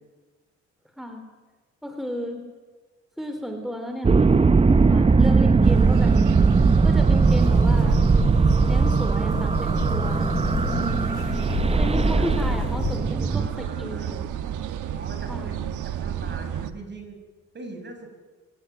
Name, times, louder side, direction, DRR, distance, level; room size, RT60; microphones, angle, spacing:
voice 1, 1.8-2.4 3.2-4.3 4.7-6.2 6.6-8.0 8.7-11.1 11.7-14.6 15.3-15.6, equal, ahead, 5 dB, 3.2 m, -34 dB
sound 1, 4.0-13.5, right 4 dB, 20° right, 0.8 m, -19 dB
sound 2, 5.6-16.7, right 9 dB, 80° right, 1.5 m, -30 dB
sound 3, 7.2-13.0, left 7 dB, 65° left, 3.7 m, -32 dB
voice 2, 13.3-14.2 14.8-17.2 17.5-18.1, right 3 dB, 35° right, 5 dB, 6.9 m, -42 dB
26.0 x 17.5 x 9.6 m, 1.3 s
cardioid pair, 90°, 30 cm